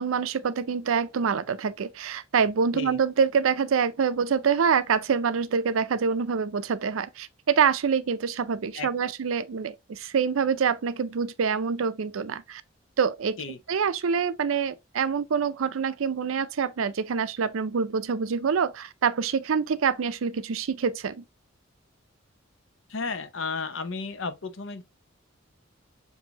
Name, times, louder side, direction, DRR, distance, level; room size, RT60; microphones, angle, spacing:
voice 1, 0.0-12.6 13.0-13.4 13.7-21.2, right 6 dB, 90° right, 0.5 m, -26 dB
voice 2, 22.9-24.8, left 4 dB, 70° left, 0.7 m, -33 dB
7.0 x 2.7 x 2.8 m
head